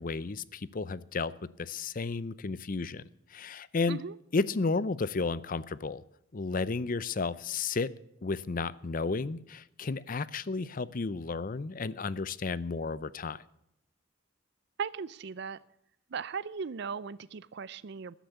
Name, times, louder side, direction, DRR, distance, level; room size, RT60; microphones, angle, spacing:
voice 1, 0.0-1.3 1.6-3.0 3.3-4.0 4.3-6.0 6.3-7.9 8.2-13.4, left 4 dB, 45° left, 0.6 m, -32 dB
voice 2, 14.8-15.6 16.1-18.1, right 6 dB, 60° right, 0.4 m, -37 dB
14.5 x 10.0 x 6.9 m
head